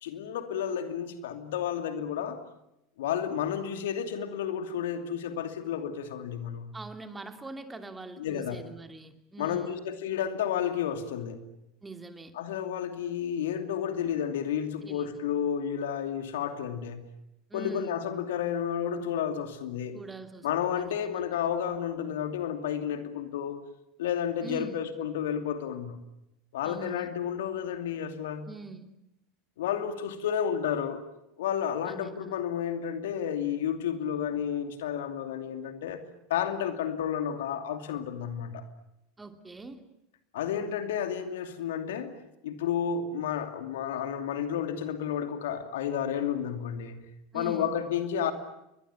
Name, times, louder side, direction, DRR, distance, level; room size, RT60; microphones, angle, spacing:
voice 1, 0.0-2.4 3.0-6.8 8.2-8.6 9.4-11.5 12.3-17.1 17.5-20.0 20.4-23.6 24.0-26.0 26.5-28.5 29.6-31.0 31.4-38.6 40.3-42.1 42.4-47.0 47.3-48.3, left 8 dB, 65° left, 8 dB, 2.7 m, -31 dB
voice 2, 6.7-9.8 11.8-12.3 14.8-15.2 17.5-18.0 19.9-21.6 24.4-24.8 26.6-27.1 28.4-28.9 31.8-32.4 39.2-39.8 47.3-47.8, right 2 dB, 10° right, 7 dB, 2.9 m, -43 dB
29.5 x 23.0 x 7.2 m, 0.85 s
figure-of-eight pair, 80°, 0 cm